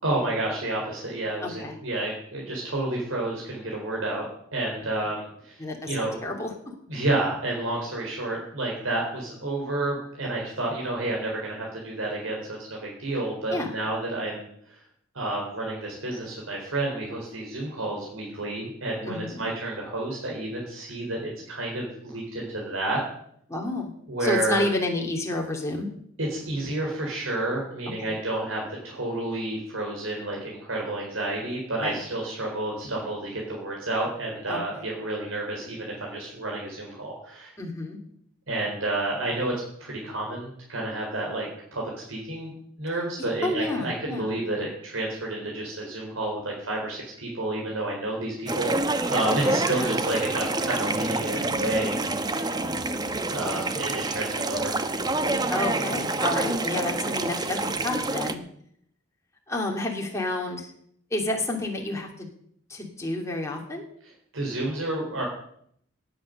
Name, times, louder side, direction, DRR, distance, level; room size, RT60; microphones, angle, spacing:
voice 1, 0.0-4.2 4.5-5.6 5.9-6.1 6.9-14.8 15.1-23.0 24.1-24.6 26.2-37.5 38.5-39.5 39.8-42.5 42.8-48.7 49.1-52.0 53.3-54.7 64.3-65.2, right 2 dB, 80° right, -2 dB, 4.2 m, -30 dB
voice 2, 1.4-1.8 5.6-6.5 13.5-13.7 19.0-19.5 23.5-23.9 24.2-25.9 28.0-28.1 31.8-32.0 34.5-34.6 37.6-38.0 43.4-44.3 49.3-49.9 52.4-52.8 55.5-58.4 59.5-60.7 61.1-62.3 62.7-63.9, left 2 dB, 15° left, 0 dB, 2.5 m, -30 dB
sound 1, 48.5-58.3, right 2 dB, 20° right, 0.9 m, -27 dB
18.0 x 8.8 x 6.6 m, 0.67 s
head